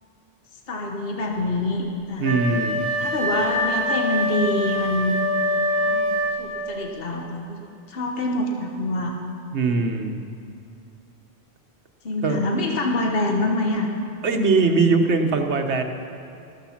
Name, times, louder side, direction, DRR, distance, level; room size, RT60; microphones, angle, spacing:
voice 1, 0.7-2.4 3.0-5.1 5.8-7.6 7.9-9.2 12.0-13.9, left 2 dB, 60° left, 1 dB, 1.4 m, -26 dB
Wind instrument woodwind instrument, 2.2-6.7, equal, 15° left, 3.7 m, -24 dB
voice 2, 2.2-2.9 9.5-10.3 12.2-12.4 14.2-15.8, right 4 dB, 80° right, 5 dB, 1.4 m, -21 dB
14.0 x 13.5 x 5.8 m, 2.7 s
omnidirectional pair, 1.1 m